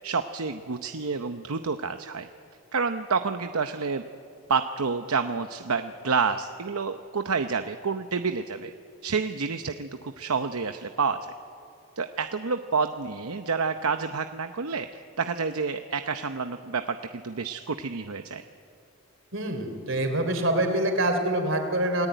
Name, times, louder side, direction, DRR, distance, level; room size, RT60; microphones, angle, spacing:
voice 1, 0.0-2.3 2.7-4.0 4.5-8.7 9.0-11.3 12.0-18.4, right 5 dB, 80° right, 8 dB, 0.9 m, -29 dB
voice 2, 19.3-22.1, right 1 dB, 60° right, 6 dB, 3.6 m, -25 dB
28.0 x 18.5 x 9.2 m, 2.4 s
head